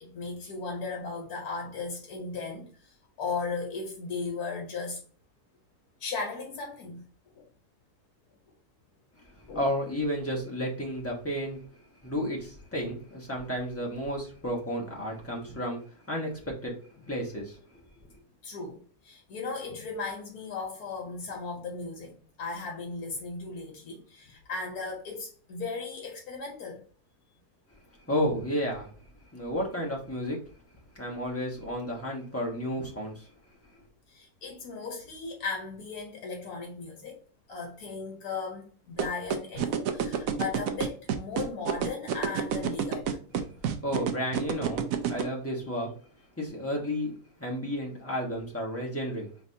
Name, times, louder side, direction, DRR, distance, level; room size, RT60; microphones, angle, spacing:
voice 1, 0.0-5.0 6.0-7.0 7.4-7.5 9.5-9.7 12.7-12.8 15.1-15.2 18.4-26.8 34.1-37.2 37.5-43.2, left 4 dB, 70° left, 1.3 m, -37 dB
voice 2, 9.4-11.6 12.0-15.8 16.1-16.7 17.1-17.6 28.1-28.9 29.3-30.4 30.9-33.3 43.8-45.9 46.4-49.3, equal, 10° left, 0.9 m, -32 dB
sound 1, 39.0-45.2, right 9 dB, 70° right, 0.9 m, -27 dB
4.0 x 3.4 x 2.7 m
omnidirectional pair, 1.7 m